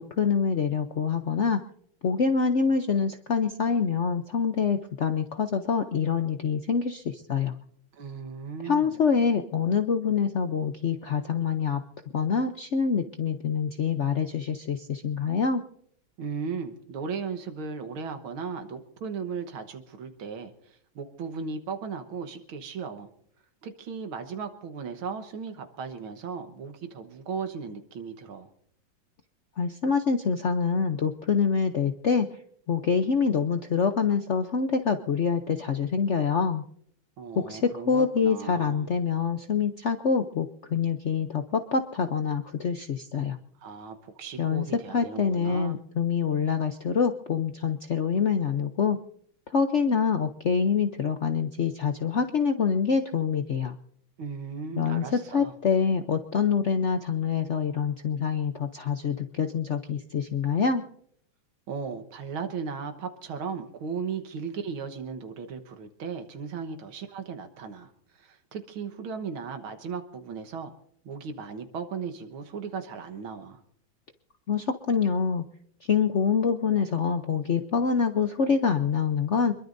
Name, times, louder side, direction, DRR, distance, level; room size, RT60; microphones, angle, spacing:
voice 1, 0.0-1.6 2.0-7.5 8.6-11.8 12.1-15.6 29.6-32.3 32.7-36.6 37.4-43.4 44.4-44.6 44.9-49.0 49.5-53.8 54.7-60.8 74.5-75.4 75.9-79.5, left 6 dB, 70° left, 7 dB, 0.6 m, -26 dB
voice 2, 7.9-9.0 16.2-23.1 23.6-28.5 37.2-38.9 43.6-45.8 54.2-55.5 61.7-70.7 71.1-73.6, right 5 dB, 85° right, 7 dB, 2.1 m, -36 dB
24.5 x 22.0 x 2.6 m, 0.66 s
omnidirectional pair, 2.2 m